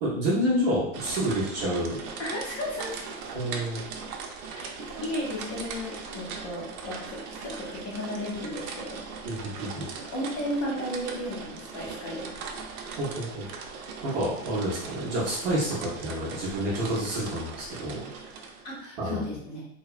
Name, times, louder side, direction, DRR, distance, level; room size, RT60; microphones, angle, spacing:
voice 1, 0.0-2.0 3.3-3.8 9.2-9.9 13.0-13.4 14.0-18.1 19.0-19.2, equal, 30° right, -7 dB, 0.5 m, -28 dB
sound 1, 0.9-18.8, right 5 dB, 85° right, 0.6 m, -39 dB
voice 2, 2.2-3.1 4.5-9.5 10.1-12.4 18.6-19.6, left 1 dB, 30° left, -4 dB, 0.5 m, -34 dB
2.7 x 2.1 x 2.3 m, 0.75 s
supercardioid pair, 165°, 43 cm